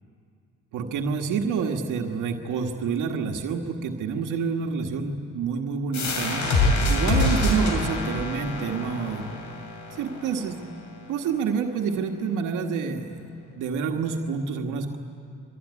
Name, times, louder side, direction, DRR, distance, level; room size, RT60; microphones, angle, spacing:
voice 1, 0.7-6.5 6.9-9.3 9.9-10.6 11.1-13.3 13.6-15.0, right 5 dB, 90° right, 3 dB, 1.7 m, -28 dB
sound 1, 5.9-11.3, left 2 dB, 70° left, 6.1 m, -26 dB
25.0 x 23.5 x 9.8 m, 2.4 s
cardioid pair, 90°, 30 cm